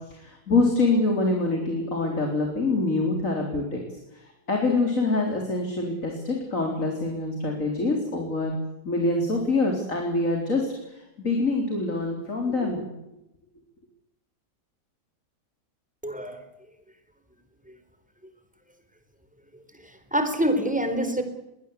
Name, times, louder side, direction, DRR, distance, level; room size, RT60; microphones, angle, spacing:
voice 1, 0.1-3.8 4.1-8.5 8.8-12.9, left 3 dB, 45° left, 2 dB, 4.4 m, -25 dB
voice 2, 16.0-16.4 17.7-17.8 19.8-21.2, right 1 dB, 5° right, 8 dB, 3.8 m, -26 dB
22.5 x 20.0 x 8.3 m, 0.90 s
omnidirectional pair, 1.9 m